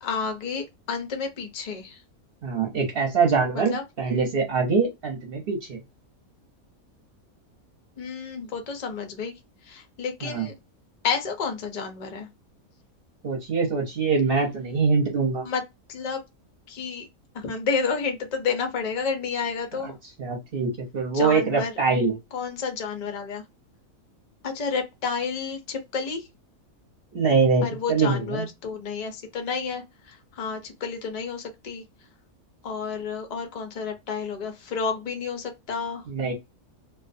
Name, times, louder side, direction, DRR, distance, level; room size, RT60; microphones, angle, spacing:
voice 1, 0.0-2.0 3.7-3.8 8.0-9.3 9.7-10.5 11.0-12.3 15.5-15.6 15.9-16.2 16.7-17.1 17.3-20.0 21.1-21.7 22.3-23.4 24.4-26.3 27.6-31.8 32.6-36.0, left 5 dB, 60° left, 0.4 m, -30 dB
voice 2, 2.4-5.8 10.2-10.5 13.2-15.4 19.8-19.9 20.2-22.2 27.1-28.5 36.1-36.3, right 4 dB, 50° right, 0.8 m, -24 dB
2.4 x 2.2 x 2.5 m
omnidirectional pair, 1.5 m